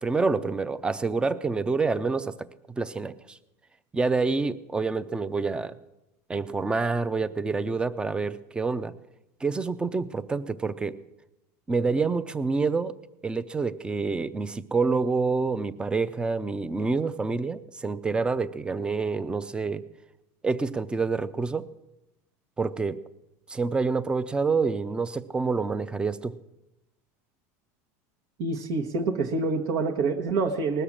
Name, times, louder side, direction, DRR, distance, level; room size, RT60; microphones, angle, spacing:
voice 1, 0.0-2.5 2.8-3.4 3.9-5.8 6.3-8.9 9.4-11.0 11.7-13.0 13.2-19.8 20.4-21.7 22.6-23.0 23.5-26.3, right 4 dB, 10° right, 15 dB, 0.5 m, -27 dB
voice 2, 28.4-30.8, right 3 dB, 65° right, 1 dB, 1.2 m, -26 dB
19.5 x 6.7 x 7.3 m, 0.93 s
supercardioid pair, 135°, 8 cm